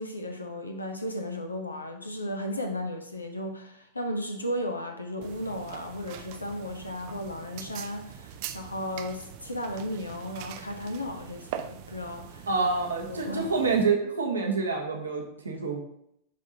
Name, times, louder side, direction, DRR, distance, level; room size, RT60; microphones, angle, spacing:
voice 1, 0.0-12.5 13.1-13.5, left 1 dB, 80° left, 5 dB, 0.9 m, -35 dB
sound 1, 5.2-13.8, right 10 dB, 45° right, 0.5 m, -43 dB
voice 2, 12.5-15.8, right 4 dB, 75° right, 2 dB, 1.2 m, -27 dB
10.5 x 3.6 x 2.8 m, 0.74 s
figure-of-eight pair, 90°, 0 cm